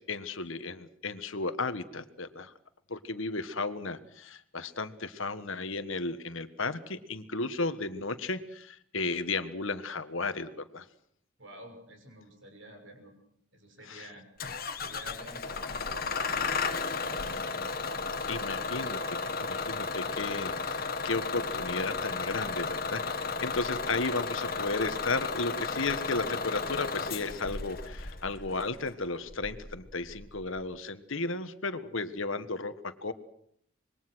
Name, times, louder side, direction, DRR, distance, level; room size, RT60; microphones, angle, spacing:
voice 1, 0.0-2.5 2.9-10.8 13.8-14.1 18.3-33.1, left 3 dB, 70° left, 11 dB, 1.5 m, -34 dB
voice 2, 11.4-13.1 13.5-14.3 14.8-17.7, equal, 60° right, 5 dB, 6.2 m, -50 dB
Bus / Engine starting, 14.4-30.6, left 4 dB, 45° left, 1.8 m, -34 dB
26.0 x 22.0 x 6.3 m, 0.69 s
head